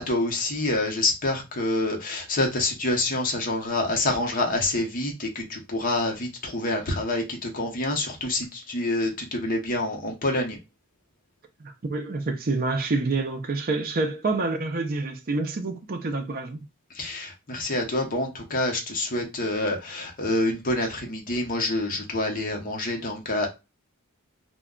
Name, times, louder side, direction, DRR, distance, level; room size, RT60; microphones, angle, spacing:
voice 1, 0.0-10.6 16.9-23.5, left 2 dB, 40° left, 0.8 m, -27 dB
voice 2, 11.6-16.6, right 3 dB, 40° right, 0.5 m, -27 dB
2.2 x 2.2 x 3.6 m
head